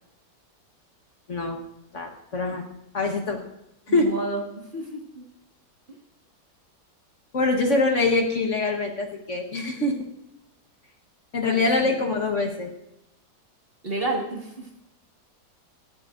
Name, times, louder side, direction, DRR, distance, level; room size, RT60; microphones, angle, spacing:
voice 1, 1.9-2.6 2.9-3.4 3.9-4.1 7.3-9.9 11.3-12.7, left 3 dB, 45° left, 2 dB, 1.5 m, -24 dB
voice 2, 3.9-5.2 5.9-6.0 11.4-12.0 13.8-14.7, right 2 dB, 35° right, 0 dB, 1.9 m, -31 dB
18.5 x 12.5 x 2.5 m, 0.84 s
omnidirectional pair, 1.8 m